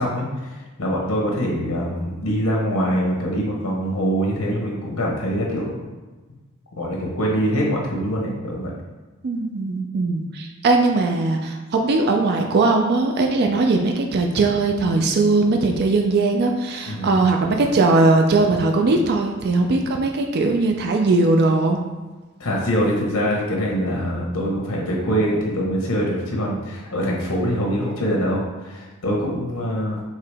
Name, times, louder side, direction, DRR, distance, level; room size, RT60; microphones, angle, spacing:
voice 1, 0.0-5.8 6.8-8.7 16.9-17.1 22.4-30.0, equal, 85° left, -2 dB, 1.0 m, -24 dB
voice 2, 9.2-21.8, right 3 dB, 50° right, 3 dB, 0.4 m, -19 dB
4.7 x 2.9 x 3.4 m, 1.2 s
head